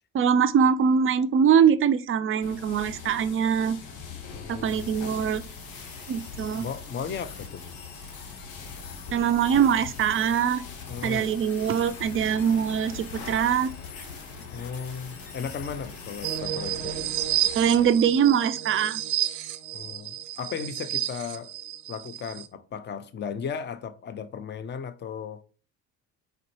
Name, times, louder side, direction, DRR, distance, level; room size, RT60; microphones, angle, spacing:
voice 1, 0.1-3.8 4.5-5.4 6.1-6.7 9.1-10.6 11.0-13.7 17.5-19.0, right 7 dB, 30° right, 0.4 m, -23 dB
sound 1, 2.4-17.9, left 5 dB, 65° left, 1.0 m, -42 dB
voice 2, 4.3-4.8 6.6-7.7 10.9-11.3 14.5-17.1 19.7-21.5 21.9-25.4, left 6 dB, 25° left, 0.5 m, -36 dB
sound 2, 4.6-16.4, left 5 dB, 45° left, 1.2 m, -46 dB
sound 3, 16.2-22.5, right 13 dB, 75° right, 0.7 m, -31 dB
4.2 x 4.0 x 3.1 m
hypercardioid pair, 55°, 50 cm